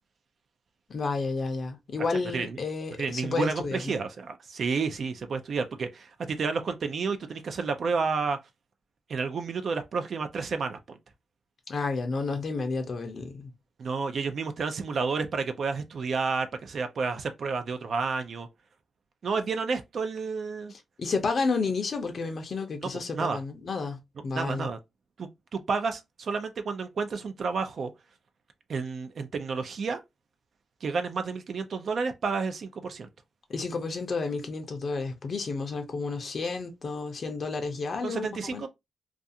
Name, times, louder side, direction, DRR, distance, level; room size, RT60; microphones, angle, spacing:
voice 1, 0.9-4.0 11.7-13.5 20.7-24.7 33.5-38.6, left 4 dB, 50° left, 0.5 m, -31 dB
voice 2, 3.0-8.4 9.1-11.0 13.8-18.5 19.2-20.7 23.1-23.4 24.3-24.8 25.2-27.9 28.7-30.0 30.8-33.1 38.0-38.7, right 4 dB, 60° right, 0.4 m, -30 dB
2.4 x 2.3 x 2.6 m
cardioid pair, 115°, 0 cm